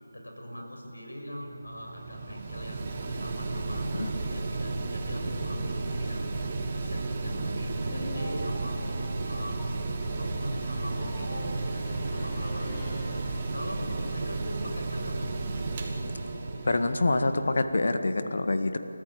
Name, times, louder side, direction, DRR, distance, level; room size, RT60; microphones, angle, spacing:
voice 1, 0.1-9.7 10.1-15.3, equal, 75° left, 2 dB, 6.4 m, -41 dB
Mechanical fan, 1.4-17.7, right 3 dB, 25° right, 2.4 m, -33 dB
sound 1, 7.2-14.0, equal, 20° left, 3.5 m, -42 dB
voice 2, 16.6-18.8, left 2 dB, 50° left, 9 dB, 1.7 m, -26 dB
29.5 x 14.5 x 8.8 m, 2.9 s
figure-of-eight pair, 160°, 0 cm